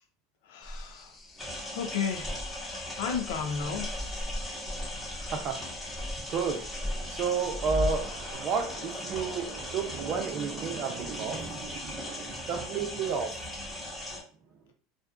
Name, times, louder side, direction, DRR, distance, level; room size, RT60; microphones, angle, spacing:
voice 1, 0.5-1.1 1.8-2.3 3.0-3.9, left 6 dB, 75° left, 5 dB, 0.6 m, -32 dB
sound 1, 0.6-8.3, equal, 25° left, 0.7 m, -38 dB
sound 2, 1.4-14.2, left 1 dB, 5° left, 1.1 m, -39 dB
voice 2, 5.1-5.6 6.3-13.7, right 5 dB, 45° right, 5 dB, 0.6 m, -32 dB
2.5 x 2.3 x 2.5 m, 0.43 s
supercardioid pair, 110°, 0 cm